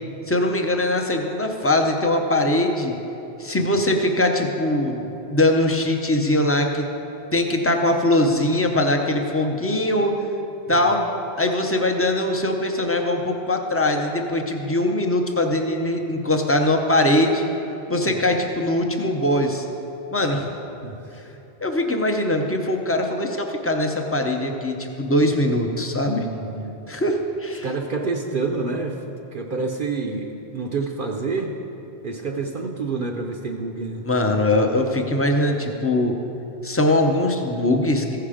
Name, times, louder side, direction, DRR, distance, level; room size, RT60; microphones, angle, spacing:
voice 1, 0.3-3.0 3.4-6.9 7.3-10.1 10.7-11.0 11.4-17.4 17.9-19.7 20.1-20.5 21.6-26.3 26.9-27.7 34.0-36.2 36.6-38.2, left 1 dB, 15° left, 3 dB, 0.5 m, -21 dB
voice 2, 26.0-26.7 27.6-31.5 32.0-34.0, right 4 dB, 55° right, 1 dB, 0.7 m, -28 dB
15.0 x 5.7 x 5.0 m, 2.9 s
omnidirectional pair, 1.1 m